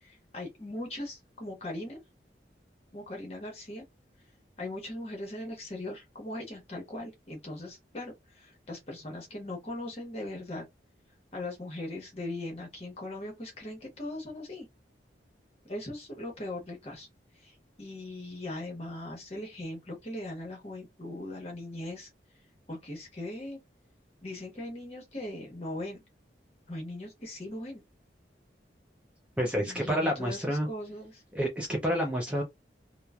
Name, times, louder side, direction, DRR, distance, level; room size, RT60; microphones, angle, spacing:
voice 1, 0.0-2.0 2.9-3.8 4.6-10.6 11.3-14.7 15.6-17.1 17.4-22.1 22.7-23.6 24.2-26.0 26.7-27.8 29.5-31.2, left 1 dB, 35° left, 1.1 m, -39 dB
voice 2, 29.4-30.7 31.3-32.4, equal, 5° right, 0.5 m, -29 dB
3.0 x 2.1 x 2.4 m
head